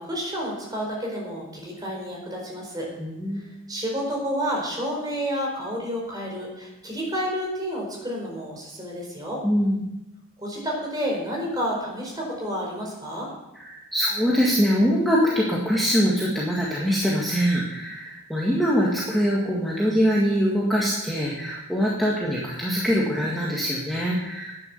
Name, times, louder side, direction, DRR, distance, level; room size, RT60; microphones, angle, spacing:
voice 1, 0.0-2.9 3.7-9.4 10.4-13.3, equal, 15° right, -1 dB, 4.6 m, -30 dB
voice 2, 3.0-3.6 9.4-9.8 13.6-24.6, equal, ahead, -5 dB, 1.8 m, -23 dB
12.0 x 9.9 x 7.0 m, 0.94 s
head